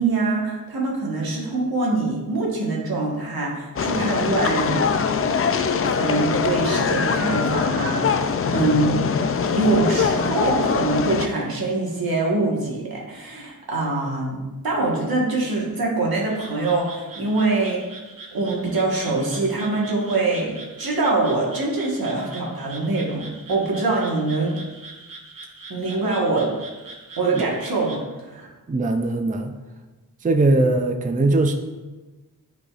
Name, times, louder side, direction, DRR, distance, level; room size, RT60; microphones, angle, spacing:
voice 1, 0.0-5.0 5.8-9.0 9.4-17.8 18.3-24.6 25.7-26.5 27.2-28.5, right 3 dB, 80° right, -3 dB, 1.5 m, -24 dB
sound 1, 3.8-11.3, left 6 dB, 40° left, 0.4 m, -22 dB
Frog, 16.3-28.0, right 3 dB, 65° right, 0.9 m, -42 dB
voice 2, 28.7-29.5 30.2-31.5, right 2 dB, 25° right, 6 dB, 0.4 m, -20 dB
9.7 x 4.0 x 2.5 m, 1.2 s
wide cardioid pair, 65°, 36 cm